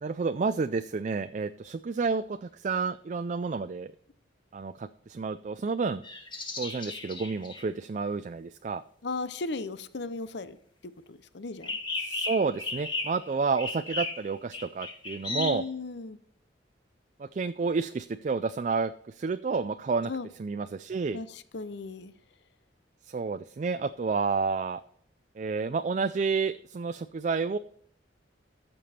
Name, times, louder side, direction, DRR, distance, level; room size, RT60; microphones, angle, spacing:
voice 1, 0.0-3.9 4.5-6.0 6.6-8.8 12.0-15.6 17.2-20.1 20.4-21.2 23.0-24.8 25.4-27.6, right 4 dB, 40° right, 11 dB, 0.3 m, -30 dB
sound 1, 6.0-7.7 11.6-13.3 13.6-15.7, left 3 dB, 25° left, 1.7 m, -35 dB
voice 2, 9.0-10.6 10.8-11.7 15.3-16.2 20.0-20.3 21.1-22.1, left 3 dB, 65° left, 13 dB, 0.7 m, -36 dB
14.0 x 6.9 x 4.3 m, 0.63 s
head